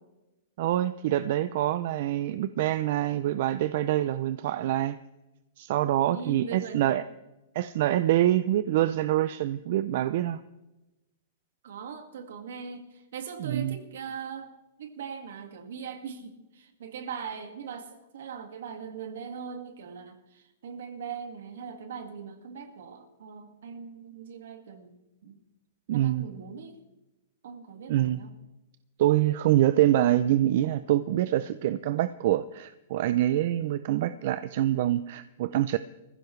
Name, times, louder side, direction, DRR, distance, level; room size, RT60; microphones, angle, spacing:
voice 1, 0.6-5.0 5.6-7.0 7.5-10.4 13.4-13.8 25.9-26.3 27.9-28.2 29.0-35.8, right 13 dB, 45° right, 13 dB, 0.4 m, -25 dB
voice 2, 6.1-7.0 11.6-14.5 14.8-24.9 25.2-25.4 25.9-26.8 27.4-28.3, right 6 dB, 70° right, 7 dB, 1.9 m, -40 dB
20.5 x 15.0 x 3.2 m, 1.0 s
supercardioid pair, 170°, 0 cm